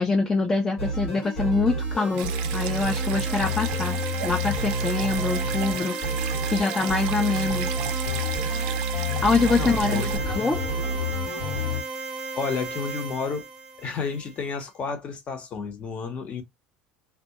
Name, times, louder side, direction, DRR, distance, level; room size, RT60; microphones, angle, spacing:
voice 1, 0.0-6.0 6.3-7.7 9.2-10.6, left 4 dB, 15° left, 0.4 m, -25 dB
sound 1, 0.8-11.8, right 1 dB, 85° left, 1.1 m, -29 dB
sound 2, 1.8-14.5, right 4 dB, 35° right, 0.6 m, -35 dB
Stream, 2.2-10.2, right 11 dB, 80° right, 0.4 m, -36 dB
voice 2, 9.5-10.1 12.3-13.4 13.8-16.4, left 5 dB, 35° left, 0.7 m, -31 dB
2.2 x 2.1 x 2.7 m
cardioid pair, 130°, 3 cm